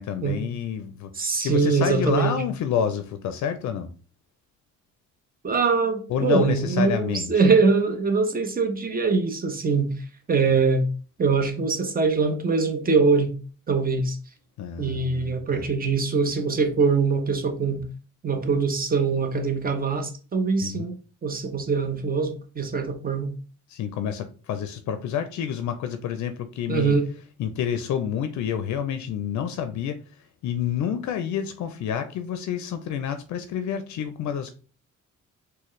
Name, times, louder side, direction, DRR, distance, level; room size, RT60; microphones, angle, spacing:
voice 1, 0.0-3.9 6.1-7.4 14.6-15.7 20.6-20.9 23.7-27.0 27.4-30.0 30.4-34.5, left 8 dB, 70° left, 0.5 m, -29 dB
voice 2, 1.1-2.4 5.4-9.9 10.3-10.9 11.2-13.3 13.7-14.2 14.8-17.9 18.2-21.0 21.2-23.3 26.7-27.1, right 4 dB, 30° right, 0.7 m, -23 dB
4.1 x 2.2 x 3.1 m
cardioid pair, 90°, 30 cm